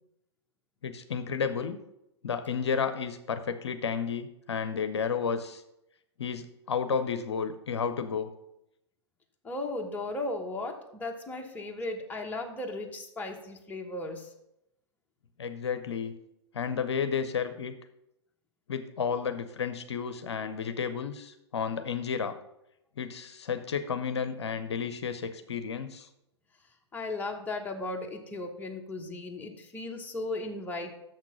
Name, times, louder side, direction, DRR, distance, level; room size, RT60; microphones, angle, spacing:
voice 1, 0.8-1.8 2.2-5.6 6.2-8.3 15.4-16.1 16.5-17.7 18.7-22.3 23.0-26.1, left 6 dB, 65° left, 9 dB, 0.7 m, -32 dB
voice 2, 9.4-14.3 26.9-30.9, left 2 dB, 10° left, 2 dB, 1.1 m, -36 dB
6.8 x 5.9 x 5.8 m, 0.83 s
figure-of-eight pair, 100°, 15 cm